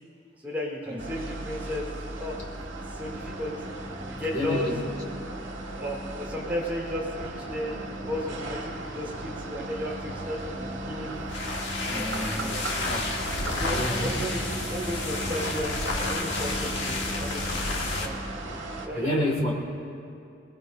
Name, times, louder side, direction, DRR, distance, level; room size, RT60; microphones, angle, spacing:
voice 1, 0.4-2.4 2.7-3.6 4.0-4.7 5.8-11.2 11.9-12.1 12.4-12.8 13.4-18.2 18.9-19.2, equal, 10° right, -6 dB, 3.9 m, -34 dB
sound 1, 1.0-18.9, right 1 dB, 80° right, 1.9 m, -36 dB
voice 2, 4.3-4.8 11.9-13.3 13.7-14.1 19.0-19.5, left 1 dB, 35° left, -2 dB, 2.4 m, -29 dB
sound 2, 11.1-18.2, left 3 dB, 65° left, 1.5 m, -31 dB
25.0 x 20.0 x 2.7 m, 2.6 s
head